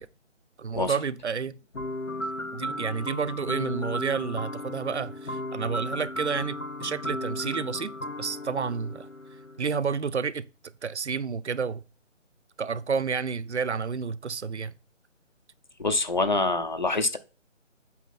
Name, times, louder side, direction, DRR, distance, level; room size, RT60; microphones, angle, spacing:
voice 1, 0.6-1.6 2.5-7.9 8.2-9.1 9.6-10.5 10.8-11.8 12.6-14.7, right 5 dB, 60° right, 0.7 m, -30 dB
sound 1, 1.7-9.6, left 1 dB, 85° left, 1.2 m, -35 dB
voice 2, 15.8-17.2, left 3 dB, 35° left, 0.6 m, -25 dB
8.2 x 5.3 x 4.3 m
figure-of-eight pair, 155°, 38 cm